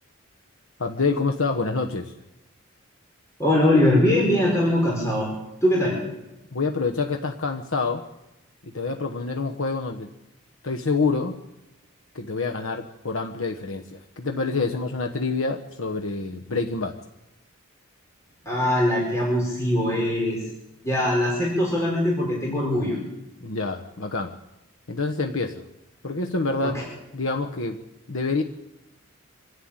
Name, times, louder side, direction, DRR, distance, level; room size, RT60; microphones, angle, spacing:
voice 1, 0.8-2.1 6.5-8.1 8.6-10.1 10.6-11.4 12.1-17.0 23.4-24.4 24.9-25.6 26.0-26.8 27.1-27.8 28.1-28.4, left 3 dB, 75° left, 4 dB, 1.2 m, -27 dB
voice 2, 3.4-5.3 5.6-6.0 18.4-20.4 20.8-23.0 26.6-26.7, left 1 dB, 15° left, -3 dB, 5.1 m, -21 dB
26.0 x 11.5 x 8.9 m, 0.93 s
head